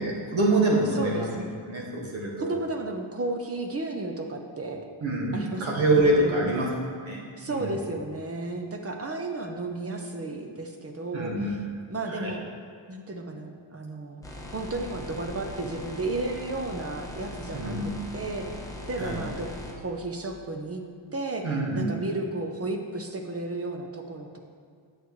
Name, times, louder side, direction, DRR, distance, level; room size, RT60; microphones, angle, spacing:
voice 1, 0.0-1.3 1.7-2.5 5.0-6.7 7.0-7.8 11.1-12.3 17.5-18.0 19.0-19.2 21.4-21.9, right 2 dB, 65° right, -3 dB, 1.8 m, -26 dB
voice 2, 0.9-1.6 2.4-4.9 5.3-6.6 7.4-11.6 11.9-12.4 12.9-14.2 14.5-18.6 18.9-20.8 21.1-21.5 21.7-24.4, right 2 dB, 30° right, 4 dB, 0.6 m, -33 dB
sound 1, 14.2-19.7, left 1 dB, 5° left, 1.0 m, -40 dB
9.1 x 8.0 x 3.2 m, 2.2 s
wide cardioid pair, 145°, 50 cm